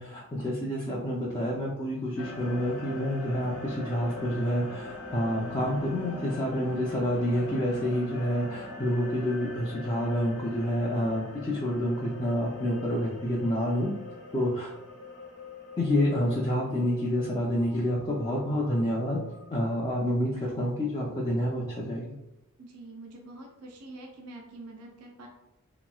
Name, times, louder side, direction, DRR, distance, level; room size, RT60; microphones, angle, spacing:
voice 1, 0.0-13.9 14.3-14.7 15.8-19.2 19.5-22.2, equal, 20° left, -4 dB, 0.4 m, -28 dB
sound 1, 2.2-19.6, left 2 dB, 75° left, 1.0 m, -42 dB
voice 2, 22.6-25.3, right 2 dB, 90° right, 1 dB, 0.6 m, -45 dB
3.0 x 3.0 x 2.3 m, 0.90 s
head